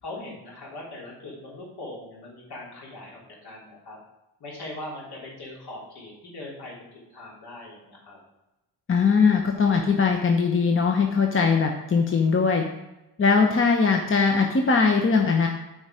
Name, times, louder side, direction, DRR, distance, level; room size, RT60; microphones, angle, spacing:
voice 1, 0.0-4.0 4.4-8.2, left 2 dB, 65° left, -3 dB, 3.2 m, -40 dB
voice 2, 8.9-12.6 13.2-15.5, left 5 dB, 30° left, 3 dB, 0.9 m, -20 dB
8.8 x 4.9 x 5.0 m, 0.98 s
cardioid pair, 80°, 42 cm